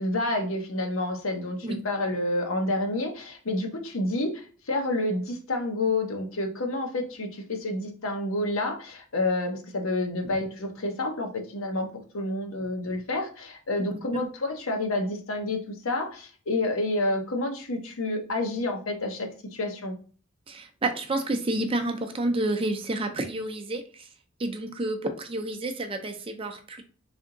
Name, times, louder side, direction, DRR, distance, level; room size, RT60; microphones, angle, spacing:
voice 1, 0.0-11.9 12.1-19.9, left 2 dB, 75° left, 3 dB, 0.9 m, -29 dB
voice 2, 20.5-24.1 24.4-26.8, right 2 dB, 25° right, 6 dB, 0.5 m, -30 dB
3.4 x 2.7 x 3.8 m, 0.39 s
head